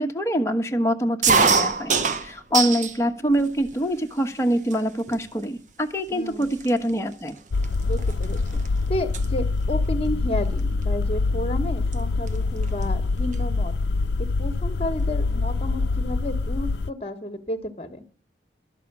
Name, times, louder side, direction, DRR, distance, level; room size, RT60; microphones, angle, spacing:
voice 1, 0.0-1.9 2.2-7.4, equal, 15° left, 4 dB, 1.2 m, -24 dB
sound 1, 1.2-3.0 3.4-4.0 4.7-4.8 5.1-5.4 6.1-6.2 6.4-8.7 8.9-9.3 10.6-10.8 11.9-12.0 12.3-12.4 12.6-13.5, right 5 dB, 40° right, 0.9 m, -24 dB
voice 2, 6.1-6.6 7.9-8.4 8.9-13.7 14.4-18.0, left 1 dB, 30° left, 8 dB, 1.4 m, -31 dB
sound 2, 7.5-16.9, left 3 dB, 75° left, 0.5 m, -25 dB
12.5 x 6.8 x 9.5 m, 0.42 s
head